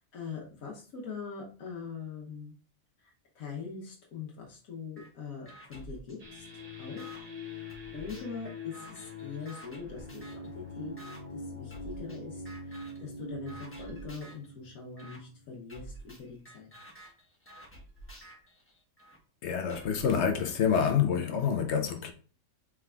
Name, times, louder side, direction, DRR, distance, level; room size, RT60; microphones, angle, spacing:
voice 1, 0.0-2.5 3.0-10.9 11.3-16.7, left 5 dB, 80° left, 1.4 m, -43 dB
sound 1, 5.0-5.1 5.5-7.2 7.7-10.5 11.0-11.2 11.7-12.2 12.5-13.0 13.5-14.5 15.0-15.2 15.7-19.2 19.7-20.9, right 1 dB, 10° left, 0.9 m, -50 dB
sound 2, 6.2-15.5, left 2 dB, 30° right, 1.1 m, -44 dB
voice 2, 19.4-22.1, left 7 dB, 65° left, 0.8 m, -27 dB
4.5 x 3.6 x 2.2 m
omnidirectional pair, 1.5 m